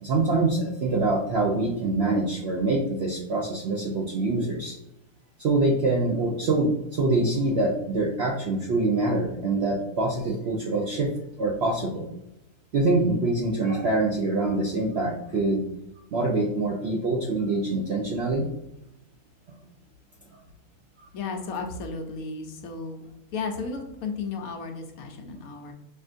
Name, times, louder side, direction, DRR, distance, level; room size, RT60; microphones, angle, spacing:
voice 1, 0.0-4.8 5.4-11.1 11.4-12.1 12.7-15.6 16.1-18.5 19.5-19.6, right 2 dB, 65° right, -1 dB, 0.6 m, -25 dB
voice 2, 21.1-23.1 23.3-25.7, left 4 dB, 70° left, 4 dB, 1.0 m, -34 dB
5.7 x 2.5 x 2.5 m, 0.88 s
omnidirectional pair, 1.7 m